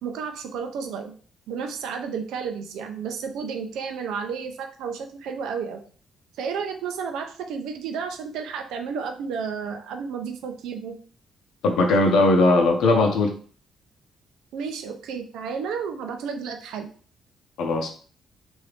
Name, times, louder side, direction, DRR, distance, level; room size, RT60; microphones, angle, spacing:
voice 1, 0.0-1.1 1.5-5.8 6.4-11.0 14.5-16.9, right 6 dB, 85° right, 6 dB, 0.5 m, -32 dB
voice 2, 11.6-13.3 17.6-17.9, left 2 dB, 80° left, 3 dB, 0.8 m, -19 dB
2.8 x 2.6 x 3.3 m, 0.42 s
cardioid pair, 90°, 0 cm